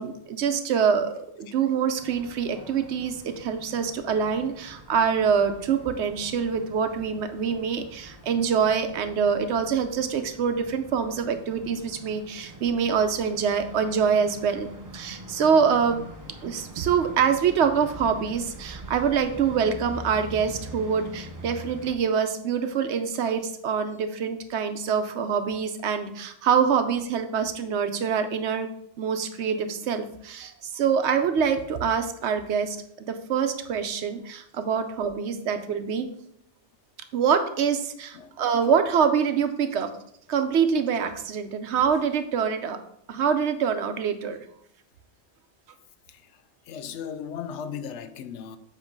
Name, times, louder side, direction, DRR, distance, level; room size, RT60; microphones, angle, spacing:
voice 1, 0.0-14.7 14.9-16.0 16.4-28.7 29.0-36.1 37.1-39.9 40.3-42.8 43.1-44.4, right 6 dB, 80° right, 1.0 m, -25 dB
sound 1, 2.0-21.9, right 1 dB, 20° right, 0.6 m, -44 dB
voice 2, 46.7-48.6, left 7 dB, 85° left, 0.9 m, -36 dB
7.3 x 3.1 x 5.2 m
omnidirectional pair, 1.2 m